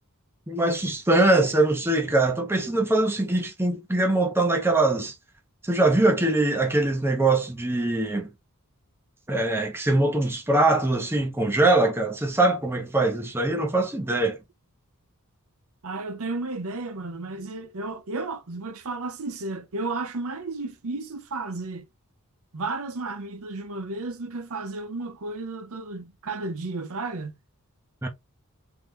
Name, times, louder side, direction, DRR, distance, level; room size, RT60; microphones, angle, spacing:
voice 1, 0.5-5.1 5.6-8.3 9.3-14.4 28.0-28.1, right 2 dB, 10° right, 0.7 m, -22 dB
voice 2, 15.8-21.9 22.5-27.3, right 3 dB, 65° right, 0.8 m, -33 dB
3.6 x 3.0 x 3.2 m
head